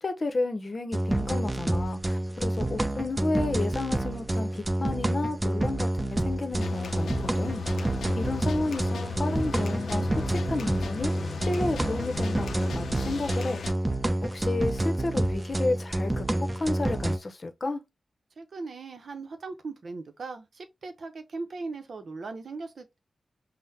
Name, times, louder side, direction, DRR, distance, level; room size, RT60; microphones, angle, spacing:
voice 1, 0.0-7.9 8.2-13.6 14.2-17.8, left 2 dB, 50° left, 0.7 m, -32 dB
sound 1, 0.9-17.2, right 1 dB, 25° right, 0.7 m, -28 dB
sound 2, 6.6-13.7, left 5 dB, 85° left, 0.5 m, -37 dB
voice 2, 18.4-23.0, right 3 dB, 70° right, 0.7 m, -39 dB
5.5 x 2.1 x 2.7 m
cardioid pair, 55°, 0 cm